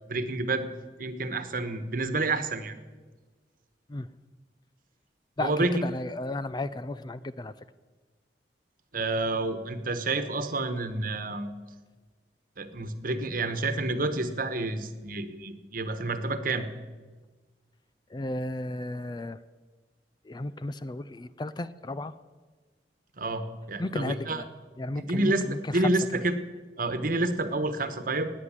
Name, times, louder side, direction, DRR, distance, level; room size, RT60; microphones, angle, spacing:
voice 1, 0.1-0.7 1.0-2.8 5.4-5.7 8.9-11.5 12.6-16.7 23.2-24.4 25.1-25.4 25.7-26.3 26.8-28.3, right 2 dB, 55° right, 10 dB, 1.3 m, -29 dB
voice 2, 5.4-7.7 18.1-19.4 20.2-22.1 23.8-24.5 24.8-26.2, left 2 dB, 25° left, 15 dB, 0.4 m, -34 dB
18.5 x 9.5 x 7.5 m, 1.3 s
head